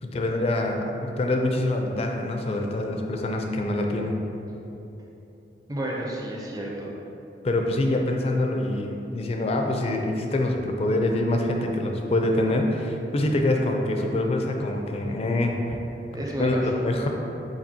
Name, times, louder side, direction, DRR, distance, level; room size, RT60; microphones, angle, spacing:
voice 1, 0.0-4.1 7.4-15.8 16.3-17.1, left 1 dB, 35° left, 2 dB, 0.4 m, -25 dB
voice 2, 5.7-6.9 16.1-16.6, right 1 dB, 20° right, -2 dB, 0.5 m, -31 dB
7.0 x 2.7 x 2.7 m, 3.0 s
head